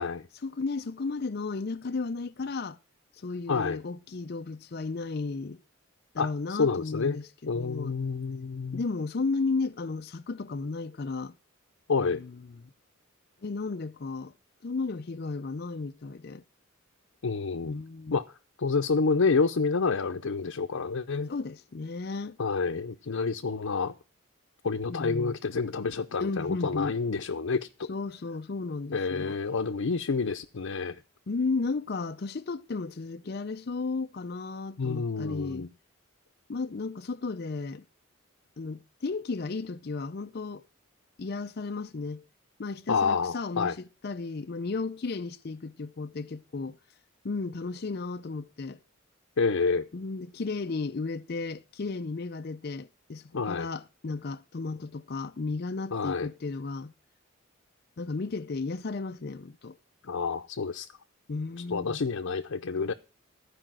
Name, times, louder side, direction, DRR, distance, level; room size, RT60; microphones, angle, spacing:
voice 1, 0.4-2.8 3.2-5.6 6.1-8.0 8.7-11.3 12.0-12.7 13.4-14.3 14.6-16.4 17.6-18.2 21.3-22.4 24.9-25.4 26.2-26.9 27.9-29.4 31.3-35.7 36.5-37.8 38.6-40.6 41.2-42.3 42.6-46.8 47.2-48.8 49.9-56.9 58.0-59.8 61.3-62.0, left 3 dB, 50° left, 0.5 m, -34 dB
voice 2, 3.5-3.8 6.2-6.3 6.6-7.2 7.5-8.8 11.9-12.2 17.2-17.7 18.1-18.2 18.6-21.3 22.4-23.9 24.6-27.9 28.9-31.0 34.8-35.7 42.9-43.8 49.4-49.9 53.3-53.7 55.9-56.3 60.1-60.9 61.7-62.9, left 4 dB, 90° left, 0.6 m, -28 dB
14.0 x 5.0 x 7.5 m
head